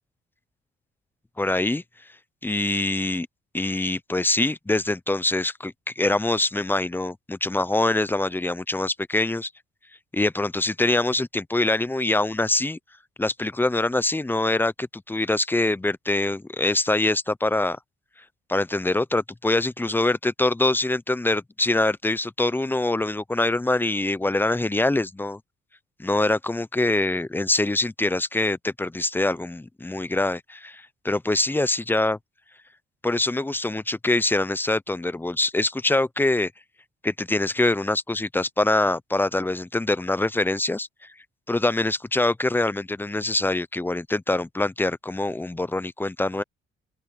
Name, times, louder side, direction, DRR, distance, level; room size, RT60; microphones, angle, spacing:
voice 1, 1.4-1.8 2.4-3.3 3.5-9.5 10.1-12.8 13.2-17.8 18.5-25.4 26.0-32.2 33.0-36.5 37.0-40.9 41.5-46.4, left 2 dB, 10° left, 0.7 m, -24 dB
open air
cardioid pair, 90°, 20 cm